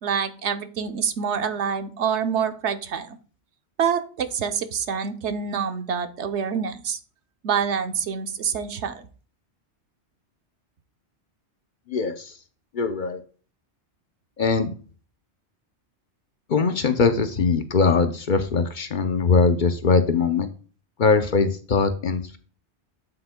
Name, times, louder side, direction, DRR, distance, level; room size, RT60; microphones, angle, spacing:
voice 1, 0.0-3.2 3.8-7.0 7.4-8.9, right 7 dB, 85° right, 9 dB, 1.1 m, -26 dB
voice 2, 11.9-12.3 12.7-13.2 14.4-14.7 16.5-20.5 21.0-22.4, left 4 dB, 50° left, 8 dB, 0.7 m, -21 dB
8.7 x 7.8 x 2.2 m, 0.40 s
omnidirectional pair, 1.2 m